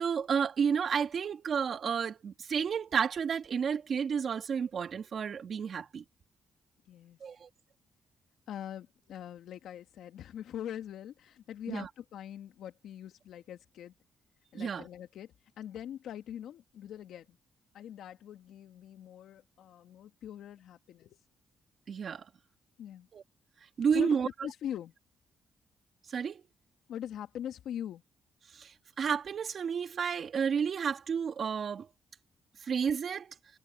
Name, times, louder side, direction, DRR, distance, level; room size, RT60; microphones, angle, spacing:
voice 1, 0.0-6.0 7.2-7.5 11.7-11.9 14.5-14.8 21.9-22.2 23.1-23.2 23.8-24.3 26.1-26.4 28.5-31.9 32.6-33.3, right 7 dB, 60° right, 1.7 m, -31 dB
voice 2, 6.9-7.2 8.5-13.9 14.5-17.4 17.7-21.2 22.8-23.1 23.9-24.9 26.9-28.0, left 10 dB, 75° left, 2.1 m, -42 dB
supercardioid pair, 60°, 0 cm